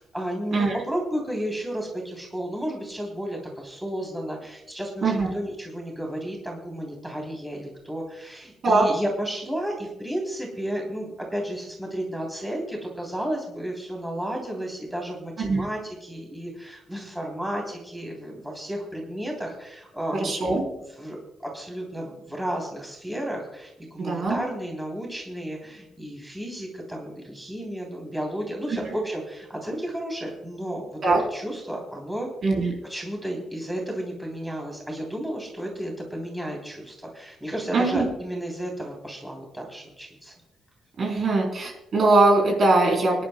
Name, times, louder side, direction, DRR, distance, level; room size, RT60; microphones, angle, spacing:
voice 1, 0.0-20.5 21.0-21.2 21.4-31.0 31.3-32.3 32.8-40.3, right 1 dB, 5° right, -1 dB, 3.3 m, -33 dB
voice 2, 20.1-20.6 24.0-24.4 28.7-28.8 31.0-31.2 32.4-32.7 37.7-38.1 41.0-43.2, right 2 dB, 50° right, 0 dB, 3.8 m, -21 dB
24.5 x 11.0 x 2.3 m, 0.89 s
cardioid pair, 120°, 0 cm